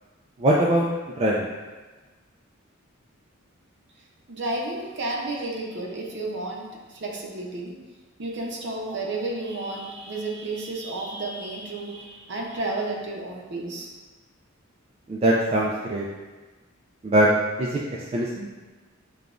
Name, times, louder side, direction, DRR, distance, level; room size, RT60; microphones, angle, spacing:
voice 1, 0.4-0.9 1.2-1.5 15.1-16.0 17.0-17.3 17.6-17.7 18.1-18.5, right 1 dB, 30° right, -4 dB, 0.3 m, -21 dB
voice 2, 4.3-7.7 8.2-13.9, right 2 dB, 55° right, -1 dB, 0.7 m, -32 dB
6.7 x 2.3 x 2.5 m, 1.3 s
head